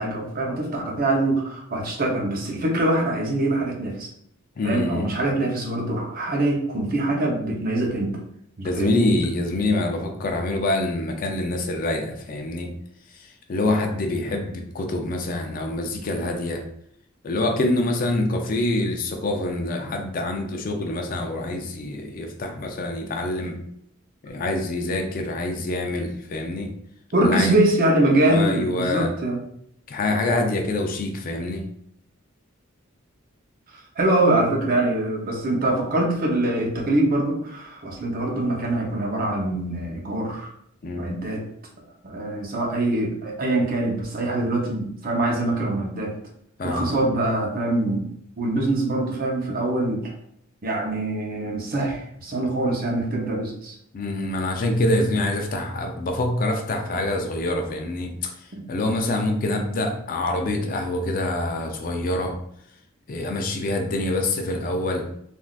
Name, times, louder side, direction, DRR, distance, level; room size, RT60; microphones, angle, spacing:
voice 1, 0.0-4.1 4.6-8.2 8.6-9.1 27.1-29.4 33.7-40.5 41.0-41.5 42.0-46.1 46.6-50.1 50.6-53.8 58.5-58.6, right 2 dB, 45° right, 0 dB, 0.6 m, -24 dB
voice 2, 4.6-5.1 8.6-12.7 13.5-16.6 17.2-23.6 24.2-26.7 27.2-27.6 28.3-29.1 29.9-31.6 40.8-41.1 46.6-47.0 53.9-62.3 63.1-65.1, left 2 dB, 45° left, 3 dB, 0.4 m, -25 dB
3.5 x 2.5 x 2.3 m, 0.70 s
head